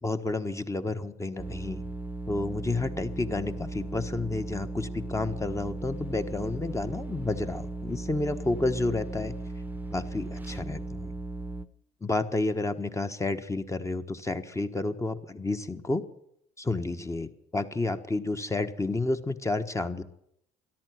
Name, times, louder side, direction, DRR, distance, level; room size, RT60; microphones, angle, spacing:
voice 1, 0.0-1.8 2.3-9.3 9.9-11.1 12.0-16.0 16.6-20.0, left 2 dB, 15° left, 8 dB, 1.4 m, -30 dB
sound 1, 1.4-11.6, right 2 dB, 10° right, 1.1 m, -37 dB
13.5 x 11.0 x 9.5 m, 0.73 s
supercardioid pair, 75°, 18 cm